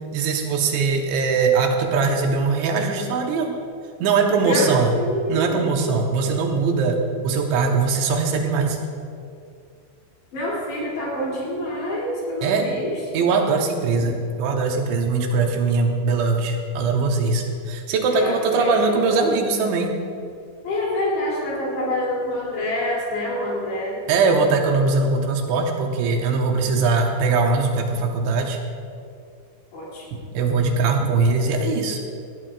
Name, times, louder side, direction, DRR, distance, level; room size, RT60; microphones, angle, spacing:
voice 1, 0.1-3.6 4.0-4.9 5.3-8.8 12.4-12.7 13.1-19.9 24.1-28.6 30.1-32.0, right 4 dB, 80° right, 2 dB, 3.3 m, -21 dB
voice 2, 4.4-5.6 10.3-13.2 18.1-19.0 20.6-24.0 29.7-30.2, left 1 dB, 65° left, -4 dB, 5.2 m, -27 dB
19.0 x 13.5 x 2.5 m, 2.4 s
omnidirectional pair, 5.3 m